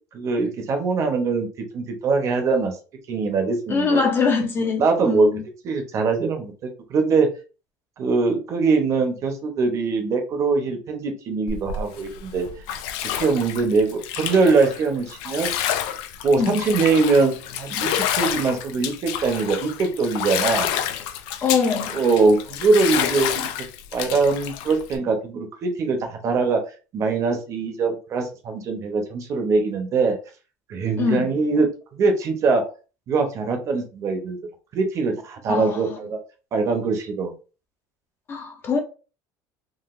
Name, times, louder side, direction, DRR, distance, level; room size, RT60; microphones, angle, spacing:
voice 1, 0.1-2.8 3.1-4.0 4.8-5.3 5.6-7.3 8.0-12.5 13.1-15.5 16.2-20.7 21.9-23.5 23.9-26.6 26.9-30.2 30.7-32.6 33.1-34.4 34.7-36.2 36.5-37.3, right 4 dB, 35° right, 0.8 m, -22 dB
voice 2, 3.7-5.4 16.4-16.6 21.4-22.0 31.0-31.3 35.5-36.1 38.3-38.8, left 5 dB, 25° left, 0.6 m, -23 dB
Bathtub (filling or washing), 11.5-25.0, left 10 dB, 70° left, 0.4 m, -29 dB
3.9 x 2.4 x 2.5 m
cardioid pair, 155°, 9 cm